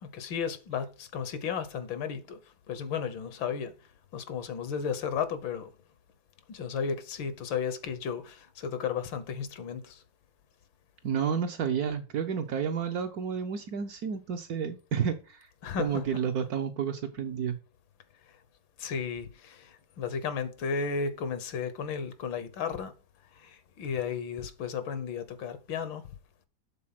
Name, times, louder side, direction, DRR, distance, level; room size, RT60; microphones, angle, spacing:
voice 1, 0.0-2.4 2.7-3.7 4.1-5.7 6.5-10.0 15.6-16.0 18.8-22.9 23.4-26.0, left 6 dB, 80° left, 1.7 m, -34 dB
voice 2, 11.0-15.5 15.8-17.6, right 7 dB, 65° right, 1.0 m, -31 dB
7.4 x 3.9 x 5.8 m
omnidirectional pair, 2.1 m